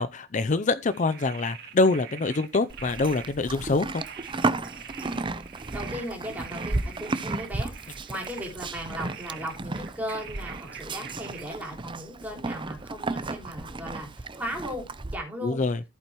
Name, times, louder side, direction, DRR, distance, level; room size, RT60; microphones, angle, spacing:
voice 1, 0.0-4.0 15.4-15.8, left 3 dB, 40° left, 0.5 m, -25 dB
sound 1, 0.8-11.4, right 8 dB, 60° right, 2.0 m, -44 dB
Livestock farm animals working animals, 2.7-15.2, right 2 dB, 25° right, 0.6 m, -34 dB
voice 2, 4.9-5.4 5.7-15.6, equal, 10° right, 4.4 m, -37 dB
14.5 x 8.8 x 3.0 m
head